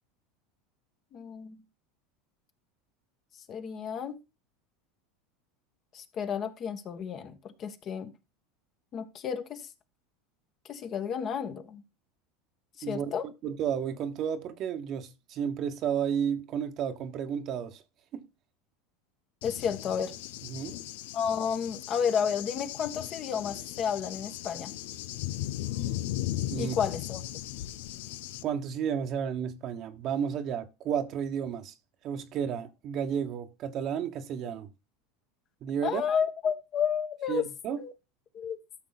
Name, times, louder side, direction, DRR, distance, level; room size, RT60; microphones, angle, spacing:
voice 1, 1.1-1.6 3.5-4.2 5.9-8.1 8.9-9.7 10.7-11.8 12.8-13.3 19.4-20.1 21.1-24.7 26.6-27.2 35.8-37.4 37.8-37.9 38.3-38.6, left 7 dB, 40° left, 1.5 m, -31 dB
voice 2, 12.8-13.1 13.4-17.8 18.1-18.2 20.4-20.8 26.5-26.8 28.4-31.7 32.0-34.7 35.6-36.0 37.3-37.8, right 8 dB, 45° right, 1.3 m, -32 dB
Cricket / Thunder, 19.4-28.4, left 14 dB, 75° left, 0.7 m, -37 dB
13.0 x 6.4 x 4.1 m
supercardioid pair, 120°, 0 cm